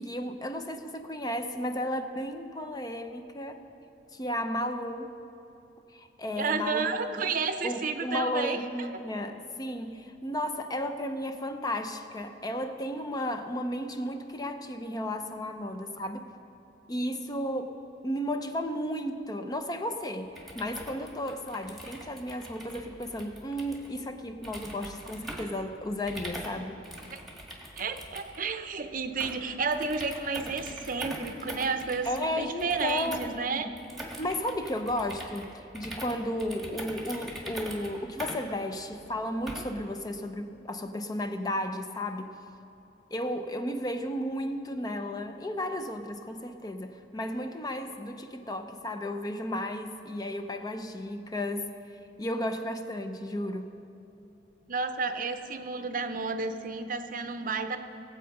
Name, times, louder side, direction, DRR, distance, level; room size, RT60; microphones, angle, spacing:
voice 1, 0.0-3.6 4.1-5.1 5.9-6.9 7.6-16.3 16.9-26.8 32.0-33.7 34.2-42.3 43.1-53.7, left 1 dB, 20° left, 7 dB, 0.6 m, -34 dB
voice 2, 6.4-8.9 27.1-27.2 27.8-33.7 54.7-57.8, right 4 dB, 45° right, 8 dB, 0.7 m, -31 dB
sound 1, 20.3-39.9, right 1 dB, ahead, 1.5 m, -43 dB
19.0 x 7.7 x 5.3 m, 3.0 s
head